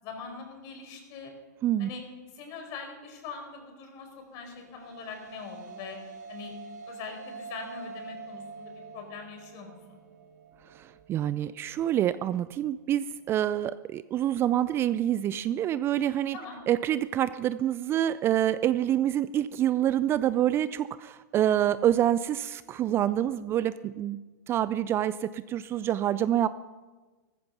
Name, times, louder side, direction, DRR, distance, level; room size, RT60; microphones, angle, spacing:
voice 1, 0.0-1.3 1.8-2.0 2.3-6.0 6.3-6.6 6.8-10.0 16.3-16.6, left 5 dB, 40° left, 4 dB, 4.9 m, -42 dB
sound 1, 4.4-12.9, right 4 dB, 70° right, 4.2 m, -46 dB
voice 2, 10.7-16.4 16.7-24.2 24.5-26.5, right 11 dB, 25° right, 15 dB, 0.4 m, -27 dB
15.0 x 14.5 x 5.9 m, 1.3 s
hypercardioid pair, 115°, 10 cm